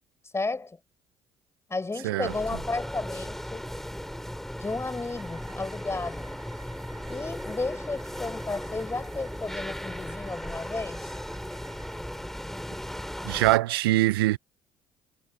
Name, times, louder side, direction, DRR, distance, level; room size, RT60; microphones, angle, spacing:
voice 1, 0.3-0.8 1.7-3.7 4.6-6.4 7.1-11.1, left 3 dB, 20° left, 6.0 m, -33 dB
sound 1, 2.2-13.6, equal, 5° left, 7.7 m, -37 dB
sound 2, 4.6-12.0, right 5 dB, 35° right, 7.1 m, -55 dB
voice 2, 13.3-14.4, right 17 dB, 85° right, 0.7 m, -23 dB
hypercardioid pair, 60°, 12 cm